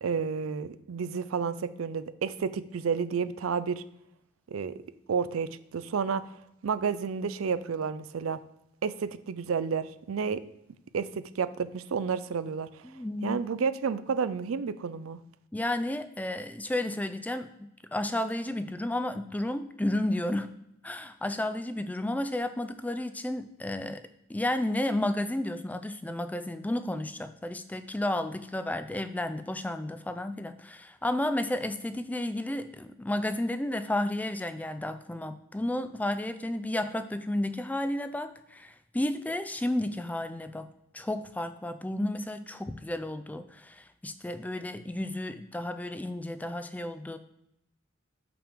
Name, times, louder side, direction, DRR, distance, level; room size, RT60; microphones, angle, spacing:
voice 1, 0.0-3.8 4.5-4.7 5.1-6.3 6.6-8.4 8.8-10.4 10.9-12.8 13.2-15.2, right 6 dB, 85° right, 14 dB, 0.4 m, -31 dB
voice 2, 12.8-13.4 15.5-20.5 20.8-24.0 24.3-40.7 40.9-47.2, left 1 dB, 10° left, 10 dB, 0.3 m, -32 dB
6.7 x 5.8 x 3.6 m, 0.83 s
head